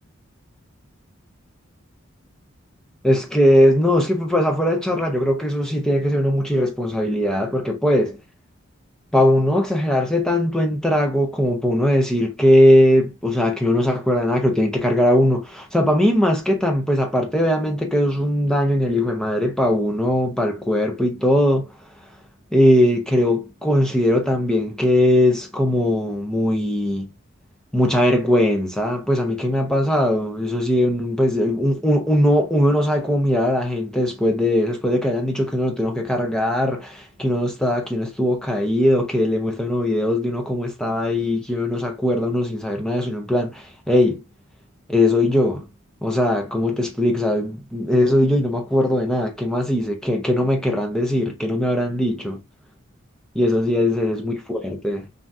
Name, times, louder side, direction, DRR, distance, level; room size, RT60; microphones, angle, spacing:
voice 1, 3.0-8.2 9.1-21.7 22.5-27.1 27.7-44.2 44.9-45.6 46.0-52.4 53.3-55.1, left 1 dB, 5° left, 0.5 m, -20 dB
3.4 x 2.6 x 2.4 m
head